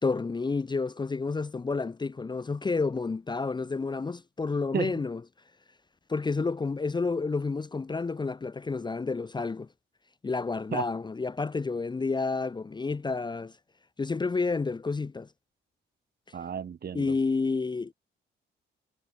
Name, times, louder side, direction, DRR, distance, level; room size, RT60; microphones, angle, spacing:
voice 1, 0.0-5.2 6.1-9.7 10.2-13.5 14.0-15.3 16.9-17.9, left 4 dB, 20° left, 0.9 m, -30 dB
voice 2, 16.3-17.1, right 7 dB, 50° right, 4.8 m, -33 dB
cardioid pair, 90°, 20 cm